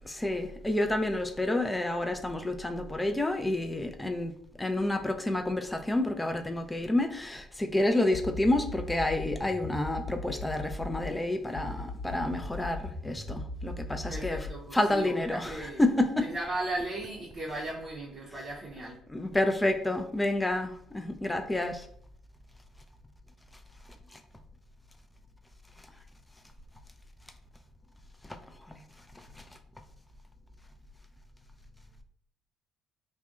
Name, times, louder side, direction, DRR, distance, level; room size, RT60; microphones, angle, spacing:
voice 1, 0.1-4.3 4.6-16.2 19.1-21.9 28.7-28.8, left 1 dB, 15° left, 5 dB, 0.3 m, -29 dB
sound 1, 8.1-11.1 11.5-14.6, left 2 dB, 70° left, 0.8 m, -38 dB
voice 2, 14.1-15.8 16.2-19.0, right 2 dB, 40° right, -4 dB, 0.6 m, -36 dB
2.5 x 2.1 x 2.3 m, 0.65 s
hypercardioid pair, 50°, 0 cm